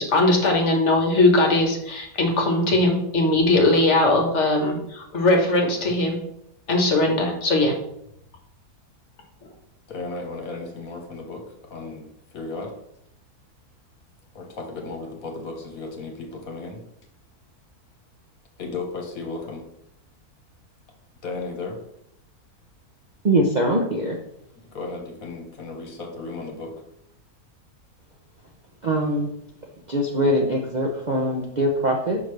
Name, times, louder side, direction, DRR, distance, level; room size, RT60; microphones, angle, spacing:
voice 1, 0.0-6.2 6.7-7.7, left 2 dB, 50° left, 1 dB, 1.5 m, -20 dB
voice 2, 9.9-11.4 11.7-12.0 12.3-12.7 14.3-16.8 18.6-19.6 21.2-21.8 24.7-26.7, left 3 dB, 65° left, 1 dB, 1.6 m, -34 dB
voice 3, 23.2-24.2 28.8-29.3 29.9-32.2, right 1 dB, 45° right, 0 dB, 0.6 m, -22 dB
6.5 x 5.7 x 3.2 m, 0.77 s
omnidirectional pair, 1.6 m